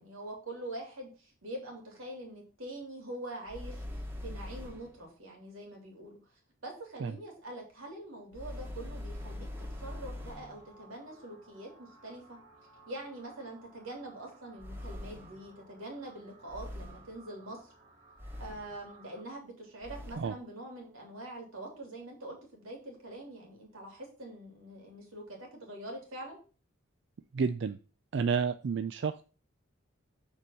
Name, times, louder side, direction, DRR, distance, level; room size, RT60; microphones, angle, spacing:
voice 1, 0.0-3.8 4.2-6.2 6.6-9.5 9.8-12.4 12.9-17.6 18.4-26.4, right 1 dB, 85° right, 0 dB, 3.1 m, -44 dB
sound 1, 3.5-5.0 8.3-10.6 14.6-15.5 16.5-17.2 18.2-18.8 19.8-20.4, left 1 dB, 10° right, 1.0 m, -42 dB
sound 2, 9.1-19.2, right 3 dB, 35° right, 3.1 m, -59 dB
voice 2, 27.3-27.8 28.1-29.2, right 5 dB, 60° right, 11 dB, 0.4 m, -30 dB
6.7 x 4.7 x 5.4 m, 0.35 s
head